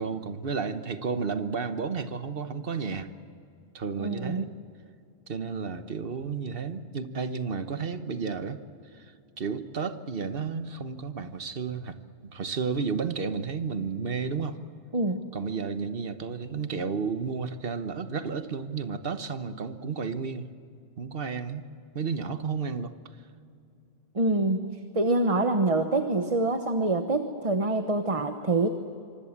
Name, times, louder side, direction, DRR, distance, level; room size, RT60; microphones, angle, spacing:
voice 1, 0.0-3.1 3.7-4.5 5.3-8.6 8.9-12.0 12.2-14.6 15.3-20.5 21.0-21.7 21.9-22.9, right 5 dB, 60° right, 10 dB, 1.4 m, -32 dB
voice 2, 4.0-4.4 14.9-15.3 24.1-28.7, right 2 dB, 35° right, 7 dB, 1.1 m, -26 dB
26.0 x 24.5 x 7.4 m, 2.5 s
omnidirectional pair, 1.1 m